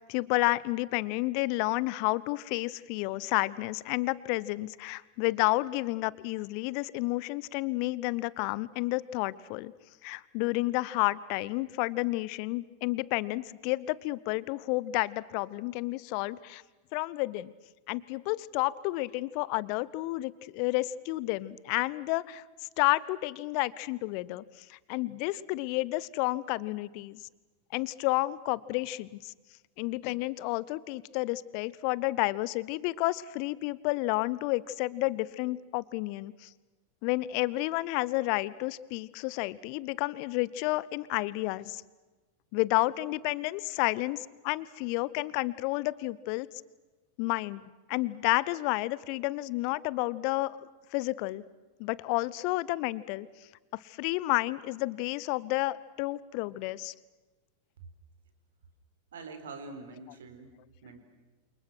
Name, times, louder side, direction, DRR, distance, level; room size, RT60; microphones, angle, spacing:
voice 1, 0.0-9.7 10.0-16.6 16.9-17.5 17.9-22.4 22.8-24.4 24.7-27.2 27.7-29.3 29.8-36.5 37.0-41.8 42.5-46.5 47.2-47.6 47.9-51.4 51.8-53.3 53.8-56.9, left 20 dB, 45° left, 20 dB, 0.9 m, -31 dB
voice 2, 59.1-60.5 60.8-61.0, right 4 dB, 65° right, 8 dB, 4.2 m, -44 dB
28.5 x 28.0 x 6.3 m, 1.2 s
figure-of-eight pair, 90°, 0 cm